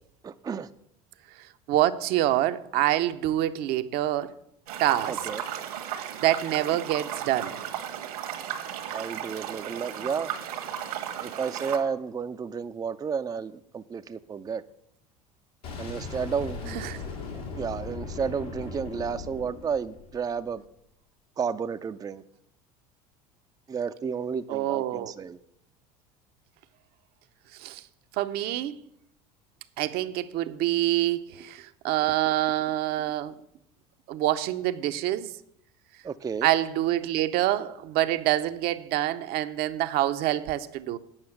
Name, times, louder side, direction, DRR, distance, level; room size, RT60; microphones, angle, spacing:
voice 1, 0.2-0.7 5.1-5.4 8.9-10.3 11.2-14.6 15.8-16.8 17.5-20.6 21.4-22.2 23.7-25.4 36.0-36.5, right 6 dB, 20° right, 0.4 m, -32 dB
voice 2, 1.7-4.3 4.8-5.2 6.2-7.5 16.7-17.0 24.5-25.1 27.6-27.8 28.2-28.8 29.8-33.3 34.1-35.3 36.4-41.0, right 14 dB, 60° right, 0.7 m, -26 dB
sound 1, 4.7-11.8, right 9 dB, 75° right, 1.4 m, -35 dB
Boom, 15.6-20.5, left 4 dB, 80° left, 2.3 m, -38 dB
8.8 x 5.5 x 7.8 m
hypercardioid pair, 75°, 19 cm